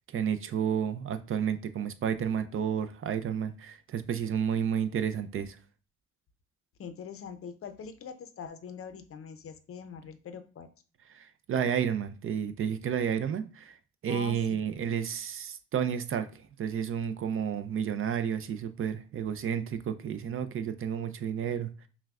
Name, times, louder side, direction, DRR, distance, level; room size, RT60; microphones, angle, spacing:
voice 1, 0.1-5.6 11.1-13.8 14.0-16.3 16.6-21.9, right 8 dB, 45° right, 0.4 m, -31 dB
voice 2, 6.8-10.7 14.1-14.6, left 6 dB, 50° left, 0.6 m, -43 dB
5.7 x 2.2 x 2.3 m
cardioid pair, 90°, 30 cm